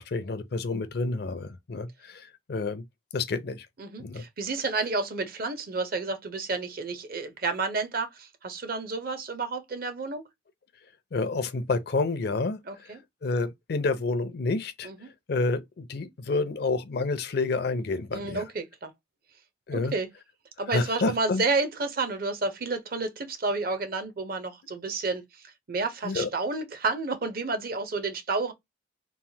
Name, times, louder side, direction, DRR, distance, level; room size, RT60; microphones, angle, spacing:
voice 1, 0.0-2.8 3.1-3.7 4.0-4.2 11.1-14.9 15.3-18.4 19.7-19.9 20.7-21.4 26.0-26.3, left 3 dB, 55° left, 0.5 m, -29 dB
voice 2, 3.8-10.2 12.7-13.0 14.8-15.1 18.1-18.9 19.7-20.1 20.6-25.2 25.7-28.5, right 3 dB, 50° right, 0.7 m, -30 dB
3.1 x 2.1 x 2.7 m
head